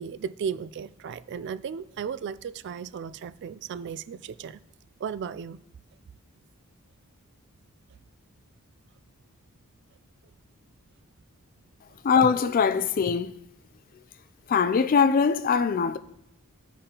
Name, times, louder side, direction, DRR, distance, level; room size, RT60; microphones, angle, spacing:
voice 1, 0.0-4.6 5.0-5.6, right 7 dB, 50° right, 0.3 m, -35 dB
voice 2, 12.0-13.3 14.5-16.0, left 6 dB, 40° left, 0.3 m, -22 dB
14.0 x 5.1 x 2.9 m
head